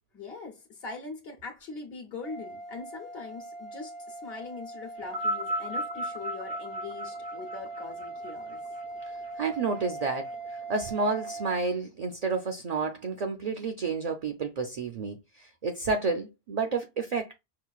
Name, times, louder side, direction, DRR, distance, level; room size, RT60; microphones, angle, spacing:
voice 1, 0.1-8.6, left 4 dB, 70° left, 1.1 m, -42 dB
sound 1, 2.2-11.6, right 2 dB, 35° left, 0.6 m, -41 dB
sound 2, 5.0-9.5 10.4-10.5, equal, 70° right, 0.9 m, -35 dB
voice 2, 9.4-10.3 10.7-17.4, right 4 dB, 50° right, 0.5 m, -30 dB
5.7 x 2.3 x 2.3 m
omnidirectional pair, 1.1 m